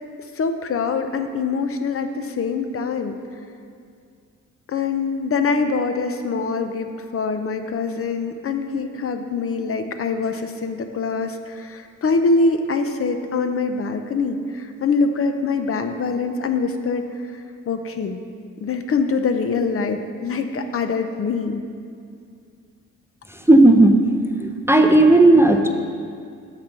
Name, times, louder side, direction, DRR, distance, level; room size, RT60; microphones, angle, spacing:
voice 1, 0.3-3.2 4.7-18.2 18.6-21.6, left 4 dB, 45° left, 8 dB, 0.6 m, -24 dB
voice 2, 23.5-24.0 24.4-25.7, right 2 dB, 10° right, 4 dB, 0.5 m, -13 dB
6.6 x 5.7 x 5.8 m, 2.2 s
cardioid pair, 90°, 31 cm